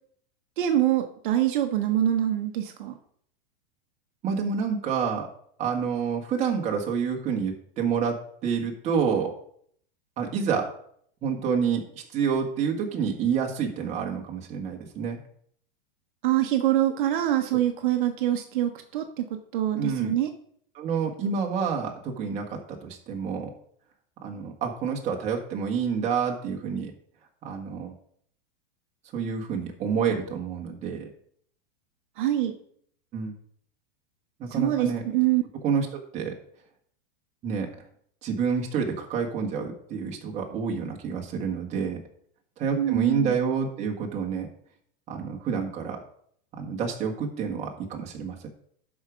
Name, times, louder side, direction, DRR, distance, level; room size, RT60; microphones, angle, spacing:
voice 1, 0.6-2.9 16.2-20.3 32.2-32.6 34.5-35.4 42.8-43.3, right 12 dB, 60° right, 5 dB, 1.0 m, -25 dB
voice 2, 4.2-5.3 5.6-8.2 8.4-9.3 10.2-10.7 11.2-15.2 19.8-20.1 20.7-23.5 24.2-26.9 27.4-27.9 29.1-31.0 33.1-33.3 34.4-35.0 35.6-36.3 37.4-37.7 38.2-42.0 42.6-44.5 45.1-46.0 46.6-48.5, right 6 dB, 25° right, 1 dB, 1.6 m, -28 dB
12.0 x 4.9 x 5.1 m, 0.64 s
supercardioid pair, 160°, 29 cm